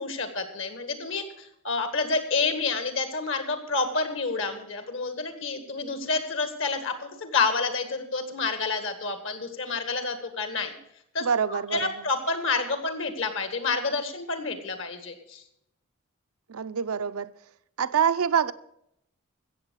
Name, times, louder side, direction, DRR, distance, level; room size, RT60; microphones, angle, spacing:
voice 1, 0.0-10.7 11.1-15.4, left 4 dB, 65° left, 1.8 m, -29 dB
voice 2, 11.2-11.8 16.5-17.3 17.8-18.5, right 7 dB, 85° right, 0.6 m, -25 dB
15.5 x 7.5 x 6.3 m
head